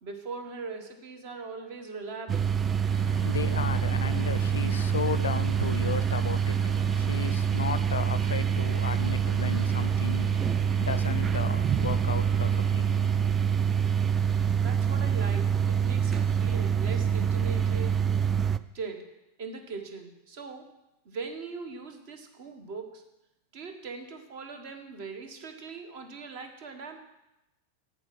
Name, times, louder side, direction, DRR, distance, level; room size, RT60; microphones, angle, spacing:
voice 1, 0.0-2.6 14.3-17.9 18.7-19.1 19.4-20.7 21.0-23.0 23.5-27.1, right 4 dB, 45° right, 1.4 m, -40 dB
sound 1, 2.3-18.6, right 7 dB, 20° right, 0.3 m, -26 dB
voice 2, 2.9-13.3, left 7 dB, 70° left, 0.4 m, -35 dB
7.8 x 7.5 x 6.0 m
figure-of-eight pair, 90°, 0 cm